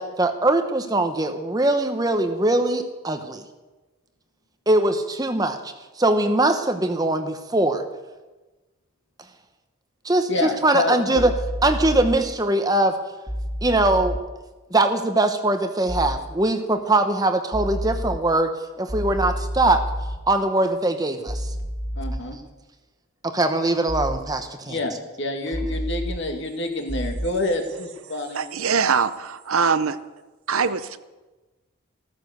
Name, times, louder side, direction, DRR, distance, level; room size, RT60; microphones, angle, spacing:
voice 1, 0.0-3.4 4.7-5.6 6.0-7.8 10.0-11.3 11.6-13.0 13.6-14.2 14.7-18.5 18.8-19.8 20.3-21.5 23.2-24.8, right 2 dB, 15° right, 7 dB, 0.9 m, -21 dB
voice 2, 10.3-11.2 22.0-22.4 24.7-28.5, left 2 dB, 55° left, 3 dB, 2.3 m, -27 dB
sound 1, 11.1-12.2 13.3-14.2 15.9-16.2 17.5-18.2 18.9-20.2 21.3-22.2 23.9-24.2 25.5-26.2 26.9-27.3, equal, 10° left, 2.2 m, -29 dB
voice 3, 28.3-30.0 30.5-31.0, right 5 dB, 75° right, 13 dB, 0.8 m, -22 dB
14.5 x 14.5 x 6.7 m, 1.2 s
head